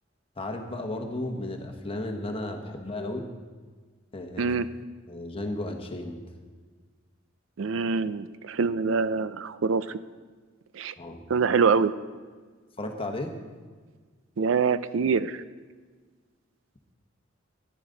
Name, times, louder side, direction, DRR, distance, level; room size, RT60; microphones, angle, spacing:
voice 1, 0.4-3.3 4.1-4.5 5.1-6.2 11.0-11.2 12.8-13.4, left 1 dB, 30° left, 4 dB, 1.2 m, -34 dB
voice 2, 7.6-10.0 10.7-10.9 11.3-11.9 14.4-15.4, right 5 dB, 75° right, 14 dB, 0.4 m, -25 dB
14.0 x 10.5 x 3.9 m, 1.5 s
head